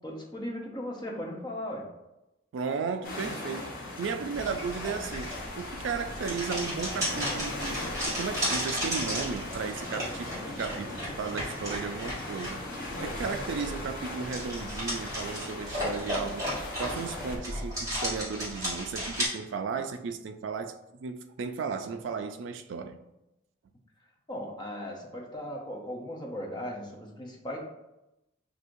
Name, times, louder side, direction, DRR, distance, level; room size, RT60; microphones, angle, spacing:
voice 1, 0.0-1.9 24.3-27.6, left 1 dB, 20° left, 0.6 m, -37 dB
voice 2, 2.5-7.8 8.1-12.6 13.0-23.0, right 5 dB, 75° right, 0.4 m, -35 dB
sound 1, 3.0-17.4, left 2 dB, 45° left, 1.1 m, -39 dB
sound 2, 4.3-19.3, equal, 15° right, 1.3 m, -35 dB
5.9 x 2.7 x 2.5 m
head